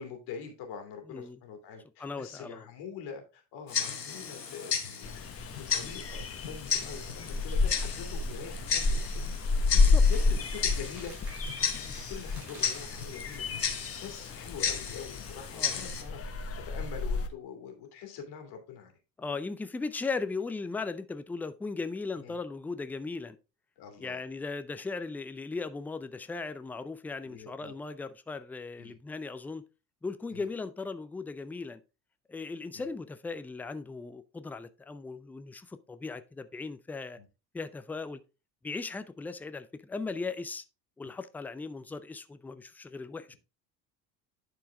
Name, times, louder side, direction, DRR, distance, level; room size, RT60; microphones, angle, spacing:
voice 1, 0.0-5.3 5.7-9.3 9.7-11.5 11.7-16.2 16.7-18.9 22.2-22.4 23.8-24.2 27.2-27.7 28.8-29.0 30.3-30.4 32.7-32.9 37.2-37.3, left 6 dB, 55° left, 2.5 m, -44 dB
voice 2, 1.1-1.4 2.0-2.7 9.7-10.0 11.9-12.0 15.5-15.7 19.2-23.4 24.0-29.6 30.0-31.8 32.3-37.2 37.5-38.2 38.6-40.6 41.0-43.3, left 4 dB, 5° left, 0.4 m, -37 dB
Tick-tock, 3.7-16.0, left 7 dB, 90° left, 1.1 m, -35 dB
sound 1, 5.0-17.3, left 4 dB, 30° left, 1.2 m, -30 dB
Crumpling crinkling, 10.1-14.7, right 2 dB, 85° right, 3.2 m, -53 dB
10.5 x 4.6 x 3.5 m
figure-of-eight pair, 65°, 48 cm